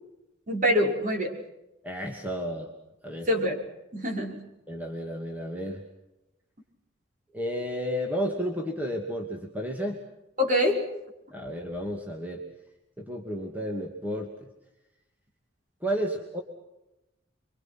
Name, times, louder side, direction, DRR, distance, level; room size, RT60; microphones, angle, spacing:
voice 1, 0.5-1.4 3.3-3.6 3.9-4.4 10.4-10.8, equal, 40° right, 2 dB, 5.5 m, -24 dB
voice 2, 1.8-2.7 3.0-3.3 4.7-5.8 7.3-10.0 11.3-12.4 13.0-14.3 15.8-16.4, equal, 10° right, 1 dB, 2.6 m, -32 dB
29.5 x 24.5 x 6.0 m, 0.93 s
head